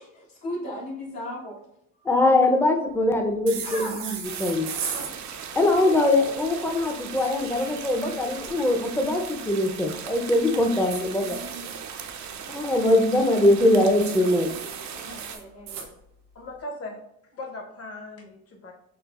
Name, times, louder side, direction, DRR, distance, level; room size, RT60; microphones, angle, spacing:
voice 1, 0.0-1.6 3.6-4.2 11.1-11.7 13.8-13.9 14.4-14.6 14.9-15.9, left 1 dB, 70° left, -4 dB, 1.3 m, -37 dB
voice 2, 2.1-4.7 5.5-11.4 12.5-14.5, left 1 dB, 5° left, 4 dB, 0.5 m, -22 dB
sound 1, 3.5-5.1 7.2-8.5 10.7-12.2 14.0-15.9, right 6 dB, 90° right, 0.7 m, -37 dB
sound 2, 4.2-15.4, right 7 dB, 45° right, 0.5 m, -38 dB
voice 3, 16.3-17.0 17.3-18.7, left 2 dB, 35° left, 2 dB, 0.9 m, -38 dB
5.7 x 2.0 x 2.4 m, 0.77 s
supercardioid pair, 65°, 39 cm